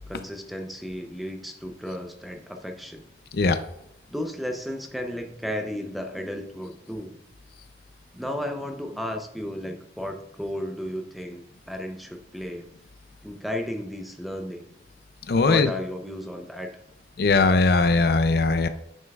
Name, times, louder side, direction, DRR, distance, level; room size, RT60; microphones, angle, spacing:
voice 1, 0.1-3.0 4.1-7.2 8.1-12.7 13.2-14.6 15.4-16.8, equal, ahead, 4 dB, 0.5 m, -34 dB
voice 2, 15.3-15.7 17.2-18.7, left 3 dB, 55° left, 10 dB, 0.4 m, -20 dB
9.2 x 5.5 x 2.3 m, 0.81 s
head